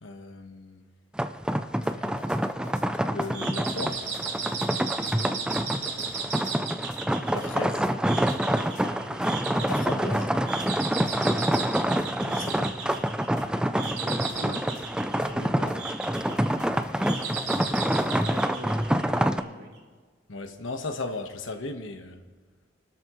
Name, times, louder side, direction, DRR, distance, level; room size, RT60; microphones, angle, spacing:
voice 1, 0.0-0.8 3.1-4.0 7.3-7.8 9.7-10.3 12.2-12.8 15.3-15.8 20.3-22.2, left 2 dB, 90° left, 6 dB, 1.3 m, -36 dB
sound 1, 1.2-19.4, equal, 5° right, 0.4 m, -27 dB
sound 2, 1.8-2.8 3.2-3.3 3.7-4.7 5.1-5.2 5.5-6.5 6.9-7.0 7.4-7.9 8.3-8.8 9.2-9.8 10.1-10.7 11.1-11.6 12.0-12.5 12.9-13.0 13.4-13.5 13.8-14.0 14.3-14.4 14.7-14.9 15.2-15.3 15.7-15.8 16.1-18.4, left 3 dB, 40° left, 1.1 m, -46 dB
sound 3, 3.3-19.4, right 5 dB, 60° right, 3.0 m, -36 dB
voice 2, 8.8-9.2 11.0-11.5 14.0-14.6 18.0-19.7, equal, 85° right, -4 dB, 4.6 m, -41 dB
27.5 x 13.0 x 3.1 m, 1.5 s
head